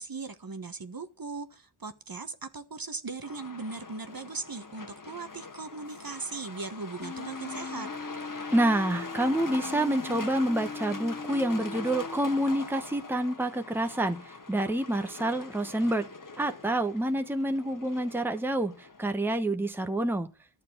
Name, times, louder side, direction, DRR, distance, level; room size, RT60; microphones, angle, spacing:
voice 1, 0.0-7.9, right 4 dB, 45° right, 1.3 m, -39 dB
Truck, 3.2-19.0, left 4 dB, 40° left, 1.4 m, -43 dB
sound 1, 7.0-12.2, left 4 dB, 20° left, 0.5 m, -40 dB
voice 2, 8.5-14.2 14.5-16.1 16.4-18.7 19.0-20.3, right 1 dB, 5° right, 1.1 m, -27 dB
12.0 x 6.8 x 8.0 m
wide cardioid pair, 65°, 50 cm